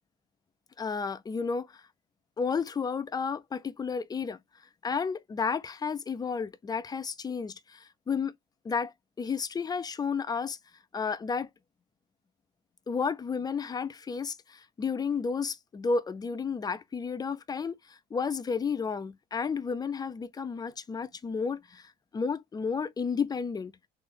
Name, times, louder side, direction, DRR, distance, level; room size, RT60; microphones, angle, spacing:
voice 1, 0.8-1.8 2.4-4.4 4.8-8.3 8.6-10.6 10.9-11.5 12.9-23.7, left 5 dB, 20° left, 0.4 m, -32 dB
3.3 x 2.5 x 3.5 m
supercardioid pair, 105°, 21 cm